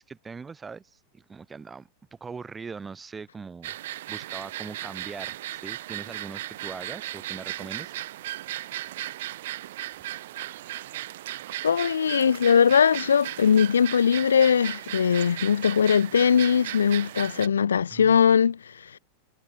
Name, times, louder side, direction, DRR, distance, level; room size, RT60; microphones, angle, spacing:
voice 1, 0.0-3.7 4.1-7.9 17.9-18.2, right 5 dB, 15° right, 1.6 m, -41 dB
sound 1, 3.6-17.5, right 14 dB, 55° right, 1.5 m, -36 dB
voice 2, 11.6-18.6 18.9-19.0, left 7 dB, 70° left, 0.3 m, -20 dB
figure-of-eight pair, 90°, 0 cm